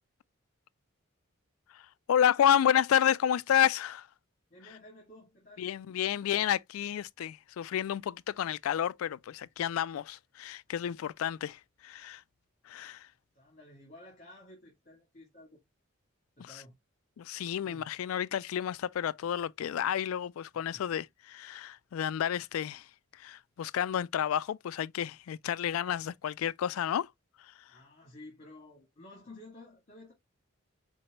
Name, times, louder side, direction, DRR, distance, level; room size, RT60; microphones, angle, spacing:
voice 1, 1.7-4.1 5.6-12.2 12.6-13.1 16.4-16.6 17.2-27.1 27.4-27.7, left 9 dB, 80° left, 0.3 m, -30 dB
voice 2, 4.5-5.7 6.2-6.5 13.3-15.6 16.4-16.8 17.7-17.9 20.7-20.9 27.7-30.1, left 1 dB, 40° left, 1.7 m, -53 dB
4.5 x 4.0 x 2.8 m
head